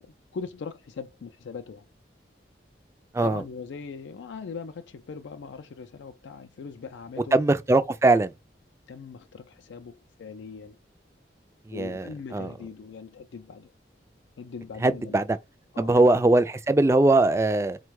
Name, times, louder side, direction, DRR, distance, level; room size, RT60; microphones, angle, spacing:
voice 1, 0.0-1.9 3.2-7.4 8.9-10.8 11.7-13.7 14.4-15.2 15.7-16.3, left 5 dB, 85° left, 0.4 m, -40 dB
voice 2, 7.3-8.3 11.7-12.5 14.8-15.3 15.8-17.8, right 2 dB, 15° right, 0.3 m, -21 dB
4.2 x 2.2 x 4.6 m
head